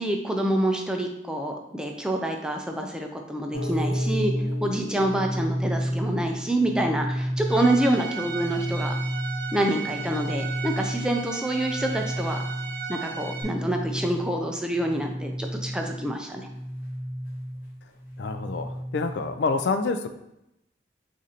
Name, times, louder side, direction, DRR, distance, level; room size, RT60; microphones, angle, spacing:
voice 1, 0.0-4.3 4.6-8.9 9.5-12.4 12.9-16.4, right 1 dB, 5° right, 2 dB, 0.4 m, -27 dB
sound 1, 3.5-19.4, equal, 50° left, 0.9 m, -32 dB
Bowed string instrument, 7.5-13.4, right 6 dB, 50° right, 0.8 m, -36 dB
voice 2, 18.2-20.1, left 4 dB, 75° left, 9 dB, 0.3 m, -27 dB
6.2 x 2.6 x 2.8 m, 0.86 s
head